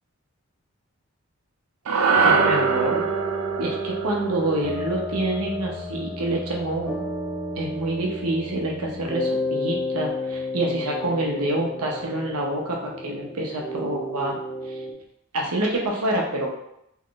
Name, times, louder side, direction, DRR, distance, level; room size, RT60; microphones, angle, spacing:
sound 1, 1.9-6.3, right 4 dB, 70° right, 0.4 m, -24 dB
sound 2, 2.2-14.9, equal, ahead, 0.6 m, -31 dB
voice 1, 2.2-3.1 3.6-7.0 7.6-14.4 14.6-14.8 15.3-16.5, right 1 dB, 85° right, -1 dB, 0.8 m, -27 dB
3.1 x 2.4 x 3.7 m, 0.79 s
head